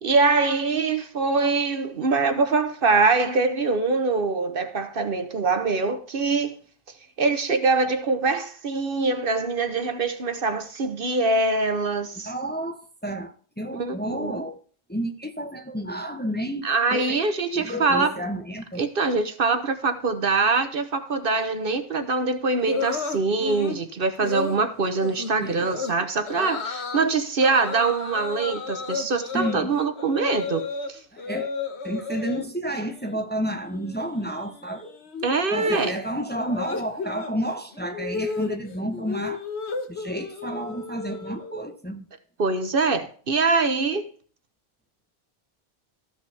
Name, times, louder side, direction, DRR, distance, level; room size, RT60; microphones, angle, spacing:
voice 1, 0.0-6.6 7.2-12.3 13.7-14.4 16.6-18.2 18.8-31.0 35.2-36.0 42.4-44.1, right 3 dB, 60° right, 1.2 m, -23 dB
voice 2, 12.2-14.6 14.9-17.2 17.5-18.8 25.4-25.7 29.3-29.8 31.1-31.5 31.8-34.9 35.5-39.4 39.9-42.0, right 1 dB, 10° left, 0.9 m, -31 dB
Moaning And Groaning, 22.7-23.8 24.2-24.6 25.0-25.3 25.6-25.9 26.3-27.1 27.4-30.9 31.2-32.5 32.8-33.2 33.5-41.6, left 4 dB, 85° left, 1.5 m, -33 dB
14.5 x 5.6 x 3.4 m
omnidirectional pair, 1.1 m